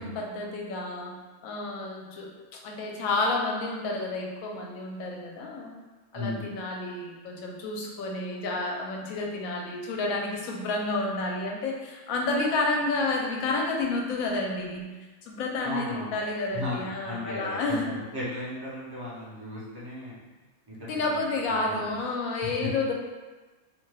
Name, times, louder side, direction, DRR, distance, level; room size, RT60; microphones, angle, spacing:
voice 1, 0.0-5.7 6.1-14.9 15.2-18.0 20.9-22.9, left 2 dB, 80° left, 0 dB, 1.0 m, -30 dB
voice 2, 6.1-6.5 15.6-16.2 16.5-20.2 20.7-21.2 21.4-21.8 22.4-22.7, left 1 dB, 25° right, -8 dB, 0.5 m, -36 dB
2.6 x 2.2 x 3.2 m, 1.2 s
omnidirectional pair, 1.4 m